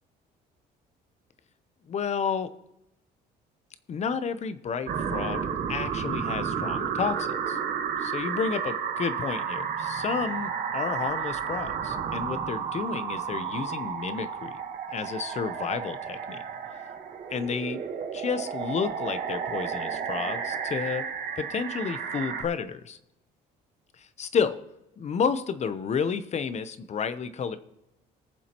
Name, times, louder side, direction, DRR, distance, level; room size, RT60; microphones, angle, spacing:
voice 1, 1.9-2.5 3.9-5.4 5.7-7.6 8.0-14.6 14.9-16.4 17.3-17.8 18.1-21.0 21.4-23.0 24.0-24.6 25.0-27.6, left 6 dB, 40° left, 12 dB, 0.8 m, -31 dB
sound 1, 4.9-22.4, right 7 dB, 55° right, 1.4 m, -32 dB
20.0 x 7.2 x 3.0 m, 0.88 s
cardioid pair, 110°, 17 cm